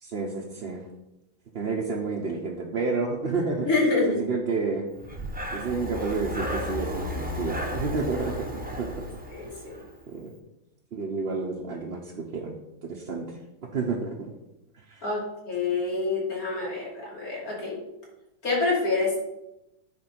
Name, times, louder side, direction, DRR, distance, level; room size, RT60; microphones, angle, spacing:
voice 1, 0.0-0.9 1.5-3.7 4.1-4.9 5.5-8.9 10.1-10.3 10.9-12.5 12.8-13.4 13.7-14.3 14.8-15.0, right 4 dB, 45° right, -2 dB, 1.0 m, -30 dB
voice 2, 3.7-4.2 9.3-9.8 15.0-17.8 18.4-19.2, left 3 dB, 70° left, -4 dB, 3.2 m, -27 dB
Breathing, 5.0-9.9, equal, 5° right, 1.0 m, -34 dB
9.5 x 4.4 x 5.9 m, 0.92 s
omnidirectional pair, 1.6 m